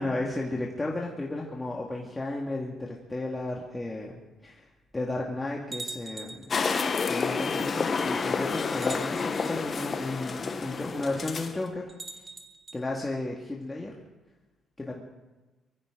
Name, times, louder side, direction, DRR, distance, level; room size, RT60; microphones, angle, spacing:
voice 1, 0.0-4.1 4.4-4.6 4.9-6.5 7.1-11.8 12.7-13.9 14.8-15.0, left 2 dB, 20° left, -2 dB, 2.1 m, -33 dB
sound 1, 4.9-5.0 5.7-6.6 7.7-7.8 8.7-9.6 11.9-12.8, right 2 dB, 25° right, 1.7 m, -42 dB
sound 2, 6.5-11.6, left 5 dB, 40° left, 1.1 m, -29 dB
23.5 x 15.0 x 3.9 m, 1.1 s
cardioid pair, 90°, 0 cm